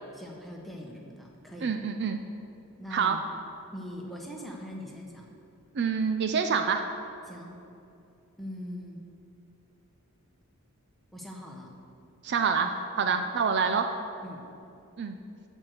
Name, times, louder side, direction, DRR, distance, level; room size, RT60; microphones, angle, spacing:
voice 1, 0.1-1.7 2.8-3.2 3.7-5.3 7.2-7.5 8.4-9.0 11.1-11.7 13.0-13.2 14.2-14.4, equal, ahead, -1 dB, 1.2 m, -42 dB
voice 2, 1.6-2.2 2.9-3.2 5.7-6.8 12.2-12.7 13.0-13.9 15.0-15.2, right 6 dB, 50° right, 6 dB, 0.5 m, -26 dB
13.0 x 4.5 x 6.5 m, 2.6 s
head